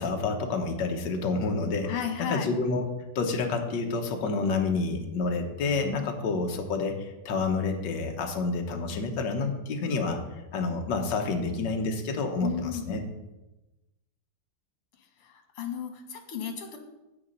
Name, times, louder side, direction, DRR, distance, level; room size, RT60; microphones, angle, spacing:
voice 1, 0.0-1.9 2.2-2.8 3.1-10.2 10.5-13.0, left 3 dB, 60° left, 3 dB, 1.5 m, -29 dB
voice 2, 1.8-2.5 12.4-12.9 15.0-16.8, left 8 dB, 90° left, 4 dB, 2.1 m, -34 dB
7.8 x 7.1 x 5.3 m, 1.0 s
omnidirectional pair, 2.4 m